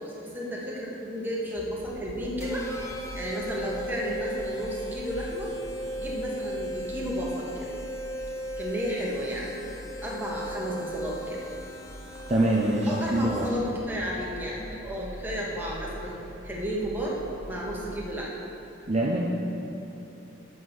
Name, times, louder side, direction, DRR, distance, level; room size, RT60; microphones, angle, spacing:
voice 1, 0.0-2.6 3.1-5.5 6.0-7.7 8.6-9.6 10.0-11.4 12.9-16.2 16.4-17.2 17.5-18.4, equal, 10° right, -5 dB, 1.3 m, -33 dB
sound 1, 1.6-18.1, right 1 dB, 90° right, 0.7 m, -44 dB
sound 2, 2.4-13.8, equal, 15° left, 0.5 m, -37 dB
voice 2, 12.3-13.5 18.9-19.2, right 1 dB, 35° right, -4 dB, 0.7 m, -24 dB
7.2 x 6.2 x 6.4 m, 2.9 s
head